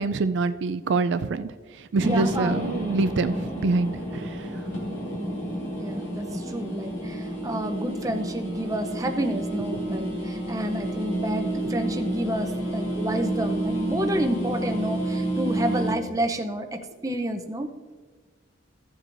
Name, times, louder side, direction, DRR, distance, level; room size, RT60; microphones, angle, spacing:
voice 1, 0.0-4.7, right 3 dB, 65° right, 10 dB, 0.4 m, -26 dB
sound 1, 2.0-15.9, right 1 dB, 75° left, 2.2 m, -30 dB
voice 2, 2.0-2.7 5.7-17.7, right 1 dB, 15° right, 5 dB, 0.6 m, -29 dB
15.5 x 7.5 x 2.6 m, 1.5 s
head